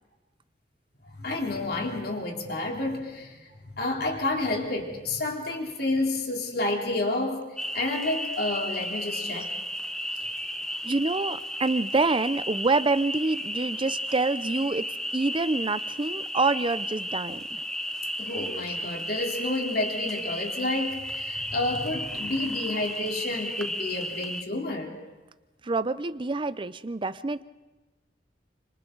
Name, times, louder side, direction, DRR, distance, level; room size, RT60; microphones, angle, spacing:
voice 1, 1.0-7.4 7.7-9.5 18.2-25.0, left 2 dB, 60° left, 1 dB, 3.5 m, -30 dB
sound 1, 7.6-24.4, equal, 5° left, 1.1 m, -34 dB
voice 2, 10.8-17.6 25.6-27.4, right 3 dB, 30° right, 15 dB, 0.6 m, -27 dB
29.5 x 26.0 x 3.9 m, 1.2 s
head